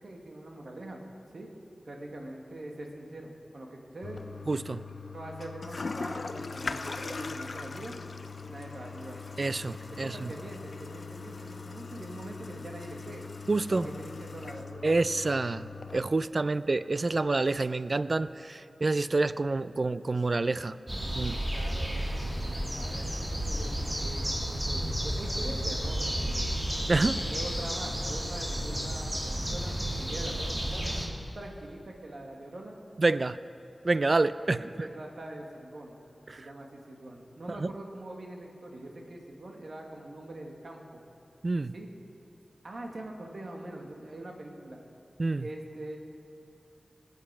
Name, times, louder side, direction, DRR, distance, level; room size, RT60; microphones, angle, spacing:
voice 1, 0.0-1.0 1.3-1.5 1.9-4.2 5.1-8.0 8.5-9.2 10.0-13.2 13.7-14.8 21.5-23.1 23.5-26.5 27.1-31.1 31.3-32.7 34.4-36.0 36.4-41.0 41.7-41.9 42.6-44.8 45.4-46.0, right 1 dB, 70° right, 1 dB, 1.7 m, -43 dB
Toilet flush, 4.0-16.0, left 4 dB, 65° left, 0.4 m, -40 dB
voice 2, 4.5-4.8 9.4-10.3 13.5-13.9 14.8-20.8 21.2-21.4 26.9-27.2 33.0-33.4 33.8-34.6 36.3-36.5 37.6-37.7 41.4-41.7 45.2-45.5, right 3 dB, 55° right, 15 dB, 0.4 m, -28 dB
sound 1, 20.9-31.1, equal, 25° right, 2.7 m, -32 dB
20.0 x 8.2 x 4.8 m, 2.8 s
cardioid pair, 50°, 0 cm